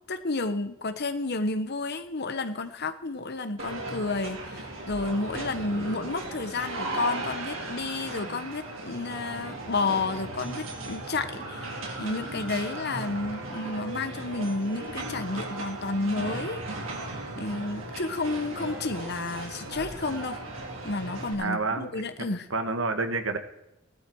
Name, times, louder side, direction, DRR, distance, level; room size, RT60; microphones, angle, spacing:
voice 1, 0.0-16.9 17.4-20.4 20.8-22.5, left 3 dB, 55° left, 9 dB, 1.2 m, -31 dB
sound 1, 3.6-21.3, right 2 dB, 90° right, 3.9 m, -36 dB
voice 2, 21.4-21.9 22.2-23.4, right 3 dB, 75° right, 7 dB, 1.7 m, -29 dB
17.0 x 12.0 x 4.8 m, 0.86 s
head